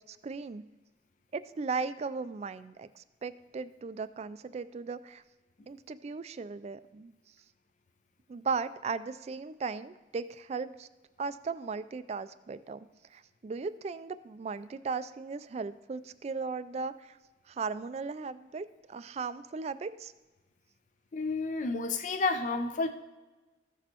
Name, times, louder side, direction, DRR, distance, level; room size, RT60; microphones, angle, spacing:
voice 1, 0.1-0.6 1.3-5.2 5.7-7.1 8.3-10.9 11.2-12.9 13.1-17.2 17.5-20.1, right 4 dB, 35° right, 13 dB, 0.3 m, -37 dB
voice 2, 21.1-22.9, left 3 dB, 45° left, 7 dB, 0.4 m, -30 dB
14.5 x 6.1 x 2.9 m, 1.2 s
head